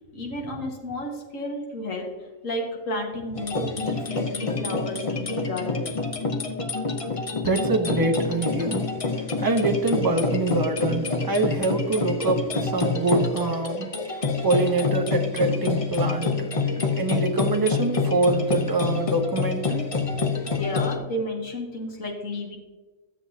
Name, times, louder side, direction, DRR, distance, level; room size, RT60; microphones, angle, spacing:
voice 1, 0.1-2.1 2.4-6.0 20.5-22.6, left 1 dB, 80° left, -1 dB, 2.1 m, -32 dB
sound 1, 3.4-21.0, left 3 dB, 30° left, 0.7 m, -27 dB
voice 2, 7.4-8.9 9.4-13.9 14.4-16.5 17.0-20.2, right 2 dB, 20° right, 3 dB, 0.9 m, -25 dB
12.5 x 7.7 x 2.8 m, 1.2 s
omnidirectional pair, 1.3 m